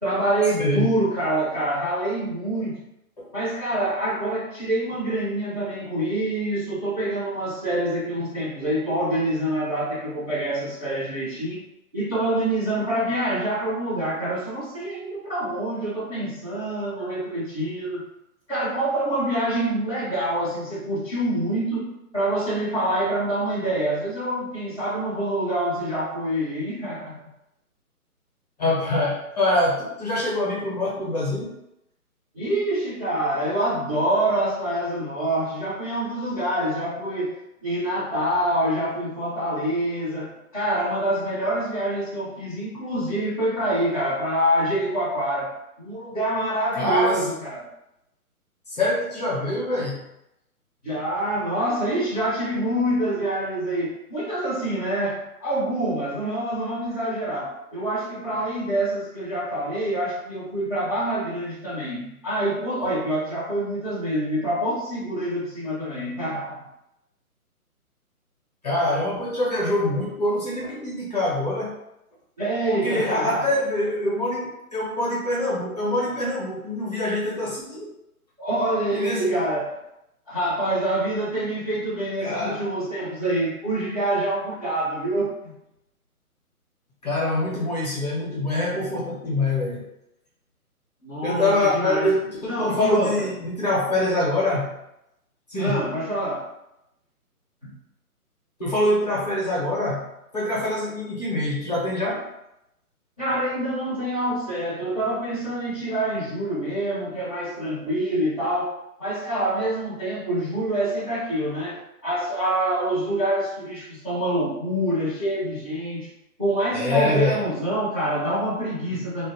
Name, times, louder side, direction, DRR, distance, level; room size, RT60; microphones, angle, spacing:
voice 1, 0.0-2.8 3.3-11.6 11.9-18.0 18.5-27.2 32.3-45.5 45.8-47.6 50.8-66.6 72.4-73.5 78.4-79.7 80.3-85.6 91.0-92.1 92.5-93.3 95.6-96.5 97.6-97.8 103.2-108.7 109.0-111.8 112.0-116.1 116.4-119.3, right 1 dB, 25° right, -9 dB, 0.4 m, -26 dB
voice 2, 0.6-0.9 3.2-3.3 28.6-31.6 46.8-47.3 48.7-50.0 68.6-71.8 72.7-77.9 78.9-79.4 82.2-82.7 87.0-89.9 91.2-94.8 95.5-95.8 98.6-100.1 100.3-102.3 116.7-117.4, left 1 dB, 30° left, -5 dB, 0.6 m, -24 dB
2.5 x 2.2 x 3.0 m, 0.84 s
hypercardioid pair, 150°, 45 cm